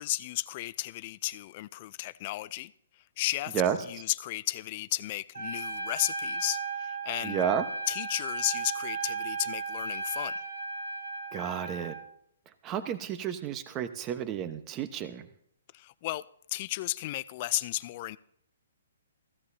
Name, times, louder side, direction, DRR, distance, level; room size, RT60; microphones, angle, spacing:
voice 1, 0.0-7.4 7.9-10.4 15.7-16.2 16.5-18.2, left 17 dB, 40° left, 0.4 m, -34 dB
Trumpet, 5.3-12.1, right 3 dB, 85° right, 3.1 m, -35 dB
voice 2, 7.2-7.6 11.3-12.0 12.6-15.3, right 8 dB, 25° right, 1.0 m, -31 dB
15.5 x 13.5 x 2.8 m
hypercardioid pair, 145°, 0 cm